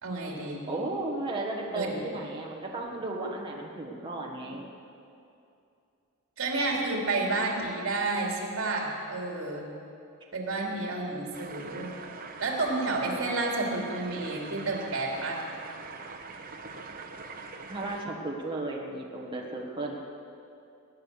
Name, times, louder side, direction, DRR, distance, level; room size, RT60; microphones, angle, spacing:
voice 1, 0.0-0.7 1.7-2.0 6.4-9.7 10.3-11.9 12.4-15.4, right 2 dB, 65° right, -1 dB, 3.1 m, -30 dB
voice 2, 0.7-4.7 17.7-20.0, right 2 dB, 20° right, -2 dB, 1.5 m, -34 dB
sound 1, 11.3-18.0, right 4 dB, 40° right, 1.0 m, -43 dB
21.0 x 9.8 x 6.7 m, 2.6 s
head